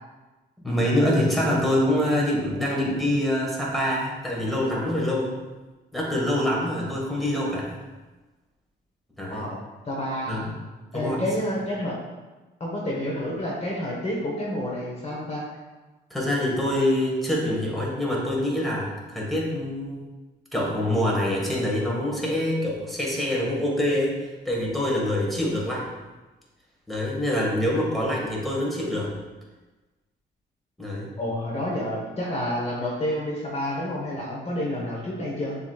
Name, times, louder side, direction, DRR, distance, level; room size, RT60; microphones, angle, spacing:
voice 1, 0.6-5.3 5.9-7.8 9.2-9.5 10.3-10.5 10.9-11.2 16.1-20.0 20.5-24.2 24.4-25.9 26.9-29.1 30.8-31.1, left 1 dB, ahead, -4 dB, 1.4 m, -25 dB
voice 2, 9.9-10.4 10.9-12.0 12.6-15.4 31.2-35.6, left 1 dB, 30° left, -4 dB, 1.0 m, -29 dB
7.1 x 3.0 x 2.3 m, 1.2 s
cardioid pair, 90°, 20 cm